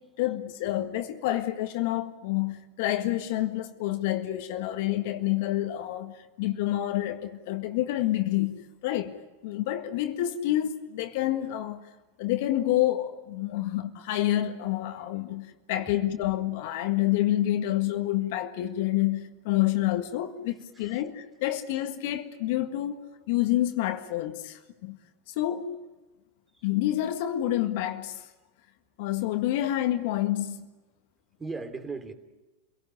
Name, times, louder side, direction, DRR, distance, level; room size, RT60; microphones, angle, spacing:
voice 1, 0.2-9.1 9.4-11.9 12.2-23.0 23.3-25.0 25.3-25.8 26.6-28.3 29.0-30.7, left 14 dB, 60° left, 1.7 m, -28 dB
voice 2, 31.4-32.1, right 4 dB, 15° right, 3.2 m, -38 dB
27.0 x 18.0 x 9.8 m
hypercardioid pair, 100°, 0 cm